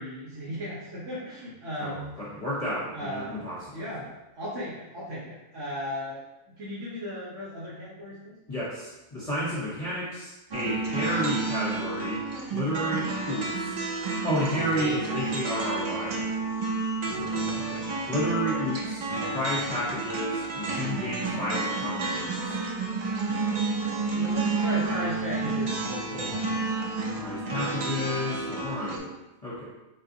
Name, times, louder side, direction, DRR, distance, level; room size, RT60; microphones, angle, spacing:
voice 1, 0.0-2.0 2.9-3.3 3.7-4.1 4.4-6.2 6.6-8.4 17.3-17.9 24.1-26.6, equal, 60° right, -9 dB, 1.3 m, -36 dB
voice 2, 1.8-3.8 8.5-12.2 12.5-13.8 14.2-16.3 17.0-17.6 18.1-22.5 27.2-29.1 29.4-29.7, equal, 30° left, -7 dB, 0.8 m, -31 dB
sound 1, 10.5-29.0, right 3 dB, 75° right, 0.3 m, -30 dB
4.1 x 3.6 x 2.7 m, 0.98 s
omnidirectional pair, 1.5 m